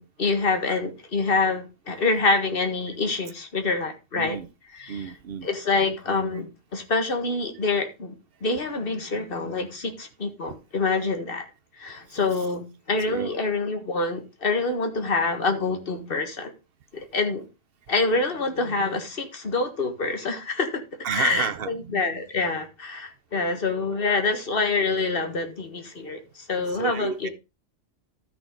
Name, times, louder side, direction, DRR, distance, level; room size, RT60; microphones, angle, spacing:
voice 1, 0.0-4.4 4.7-5.1 5.4-8.1 8.4-11.5 11.8-16.5 16.9-17.4 17.9-20.8 21.1-27.3, left 3 dB, 50° left, 1.7 m, -26 dB
voice 2, 4.1-4.5 4.9-5.5 13.1-13.3 21.0-22.0 24.0-24.3 26.6-27.3, right 7 dB, 55° right, 0.8 m, -31 dB
13.0 x 6.0 x 3.7 m
omnidirectional pair, 1.3 m